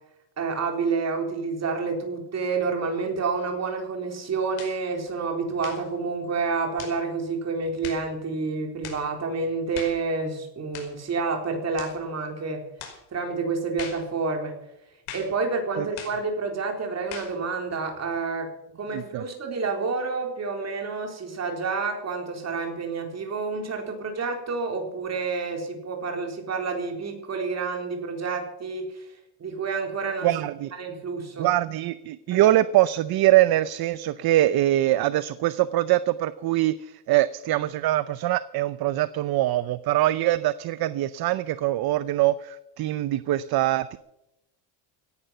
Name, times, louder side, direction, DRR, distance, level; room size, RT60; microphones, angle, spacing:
voice 1, 0.4-12.6 13.1-14.5 15.1-18.5 18.8-29.1 29.4-30.3 30.7-31.5 32.3-32.4, right 4 dB, 30° right, 3 dB, 4.0 m, -29 dB
sound 1, 4.6-4.8 5.6-5.9 6.8-7.0 7.8-8.1 8.8-9.1 9.7-10.0 10.7-11.0 11.8-12.0 12.8-13.0 13.8-14.1 15.1-15.4 16.0-16.2 17.1-17.4, left 7 dB, 75° left, 5.4 m, -40 dB
voice 2, 18.9-19.2 30.2-30.7 31.4-44.0, right 14 dB, 50° right, 15 dB, 0.7 m, -23 dB
17.0 x 11.0 x 7.0 m, 0.86 s
cardioid pair, 145°, 49 cm